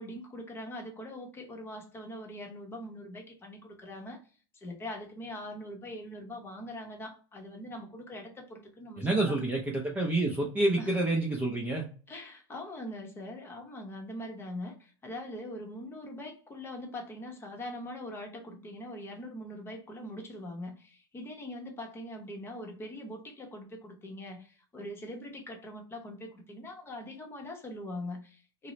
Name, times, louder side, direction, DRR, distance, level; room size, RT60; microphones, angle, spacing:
voice 1, 0.0-4.2 4.5-9.4 10.8-11.0 12.1-28.7, left 1 dB, 15° left, 0.9 m, -42 dB
voice 2, 9.0-11.9, right 2 dB, 10° right, 0.5 m, -28 dB
3.7 x 2.1 x 3.0 m
supercardioid pair, 135°, 14 cm